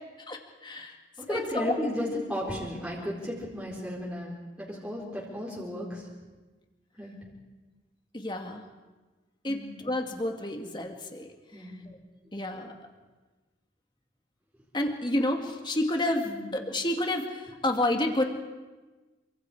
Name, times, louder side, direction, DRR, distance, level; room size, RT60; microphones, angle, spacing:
voice 1, 0.3-1.0 1.3-1.7 8.1-8.6 9.4-11.3 12.3-12.7 14.7-16.2 16.5-18.2, left 1 dB, 25° left, 3 dB, 2.3 m, -29 dB
voice 2, 1.3-6.1 7.0-7.2 9.5-9.7 11.5-11.7 16.2-16.4, left 1 dB, 5° right, -6 dB, 4.1 m, -34 dB
27.5 x 25.0 x 5.0 m, 1.3 s
head